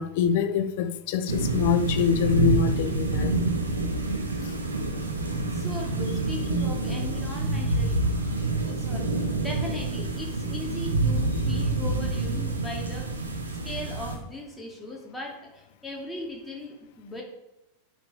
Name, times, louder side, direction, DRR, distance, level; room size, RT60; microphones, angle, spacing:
voice 1, 0.0-3.3, left 8 dB, 50° left, 0.8 m, -25 dB
sound 1, 1.3-14.1, right 2 dB, 75° right, 1.8 m, -27 dB
voice 2, 5.5-13.1 13.5-17.2, left 1 dB, 5° left, 2.7 m, -39 dB
11.0 x 5.3 x 5.1 m
figure-of-eight pair, 90°, 0 cm